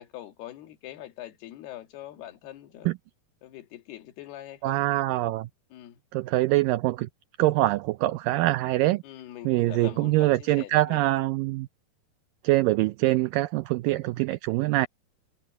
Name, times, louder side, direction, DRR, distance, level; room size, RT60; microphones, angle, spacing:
voice 1, 0.0-3.0 3.4-4.8 5.7-6.0 9.0-11.0, left 13 dB, 85° left, 3.9 m, -43 dB
voice 2, 4.6-5.5 6.1-7.1 7.4-9.0 9.5-11.7 12.4-14.9, right 18 dB, 85° right, 2.0 m, -24 dB
omnidirectional pair, 4.4 m